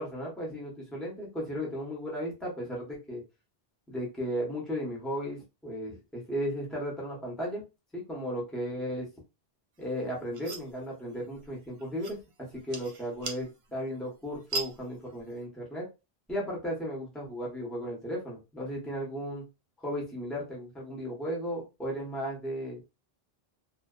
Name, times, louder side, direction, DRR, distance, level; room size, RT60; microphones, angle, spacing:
voice 1, 0.0-3.2 3.9-7.6 7.9-9.1 9.8-15.8 16.3-19.4 19.8-22.8, equal, ahead, -3 dB, 0.8 m, -35 dB
porcelain clinks slides, 9.8-15.4, right 3 dB, 75° right, 0.9 m, -42 dB
2.6 x 2.1 x 2.3 m, 0.27 s
omnidirectional pair, 1.0 m